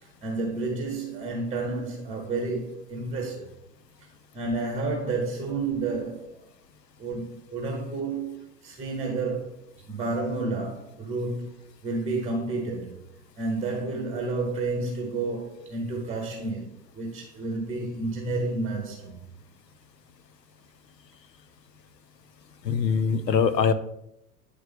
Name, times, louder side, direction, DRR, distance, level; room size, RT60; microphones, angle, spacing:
voice 1, 0.0-3.5 4.3-6.5 7.0-9.5 9.9-11.5 11.8-13.0 13.4-19.2, right 3 dB, 15° right, 0.8 m, -30 dB
voice 2, 22.6-23.7, left 6 dB, 80° left, 0.7 m, -22 dB
9.1 x 3.3 x 3.5 m
figure-of-eight pair, 95°, 49 cm